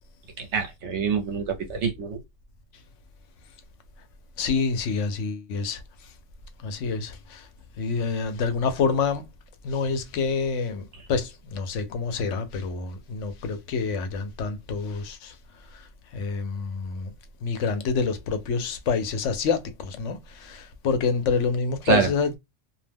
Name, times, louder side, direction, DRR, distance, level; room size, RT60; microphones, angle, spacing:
voice 1, 0.4-2.2 21.9-22.1, right 5 dB, 70° right, 1.0 m, -25 dB
voice 2, 4.4-6.1 6.6-7.5 7.8-9.2 9.6-15.4 15.7-17.1 17.4-22.4, left 5 dB, 75° left, 0.9 m, -27 dB
2.4 x 2.1 x 3.3 m
omnidirectional pair, 1.3 m